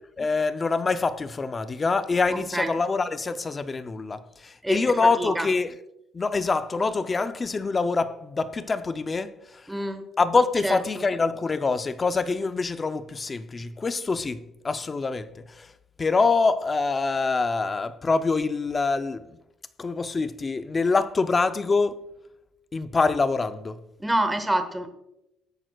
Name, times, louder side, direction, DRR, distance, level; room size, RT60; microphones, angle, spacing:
voice 1, 0.2-5.8 6.1-9.6 10.2-15.7 16.0-19.3 19.8-22.0 22.7-23.8, left 4 dB, 20° left, 0.5 m, -25 dB
voice 2, 9.7-10.0 10.6-10.8 24.0-24.9, right 1 dB, 5° right, 1.1 m, -26 dB
19.0 x 8.9 x 2.3 m
cardioid pair, 145°, 0 cm